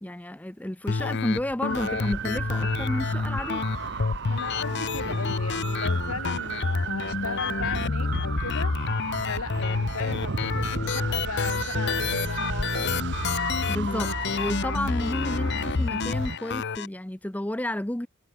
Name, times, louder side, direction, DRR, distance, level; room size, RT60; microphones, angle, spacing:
voice 1, 0.0-3.6 13.7-18.1, left 1 dB, 5° left, 0.6 m, -31 dB
sound 1, 0.9-16.9, left 4 dB, 50° left, 0.6 m, -29 dB
sound 2, 1.7-16.4, right 5 dB, 50° right, 0.8 m, -34 dB
voice 2, 4.3-8.8 9.3-13.0, left 4 dB, 75° left, 1.2 m, -36 dB
head